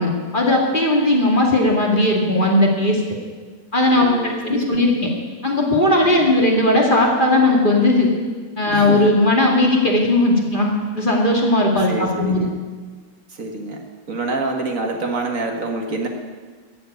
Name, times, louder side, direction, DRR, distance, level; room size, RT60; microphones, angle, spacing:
voice 1, 0.0-3.0 3.7-4.9 5.4-8.1 8.6-12.5, left 1 dB, 30° left, -1 dB, 2.4 m, -17 dB
voice 2, 4.0-4.8 6.0-6.3 8.7-9.2 11.9-12.5 13.3-13.8 14.1-16.1, right 2 dB, 60° right, 3 dB, 2.0 m, -26 dB
14.0 x 7.6 x 9.4 m, 1.4 s
omnidirectional pair, 1.6 m